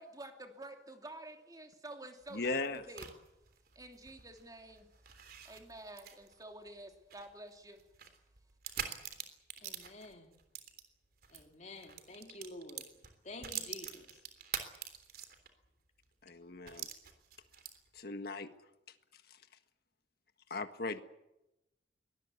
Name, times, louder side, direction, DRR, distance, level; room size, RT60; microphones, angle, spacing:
voice 1, 0.0-3.1 3.7-4.9 5.4-7.8, right 1 dB, 20° right, 2.9 m, -50 dB
sound 1, 2.2-11.4 11.8-15.7 16.0-16.1 16.7-18.0, right 9 dB, 55° right, 3.4 m, -46 dB
voice 2, 2.3-2.8 16.2-16.9 17.9-18.5 20.5-21.0, left 3 dB, 55° left, 1.6 m, -37 dB
voice 3, 9.6-10.3 11.3-14.3, left 2 dB, 40° left, 3.7 m, -50 dB
23.5 x 19.0 x 8.4 m
head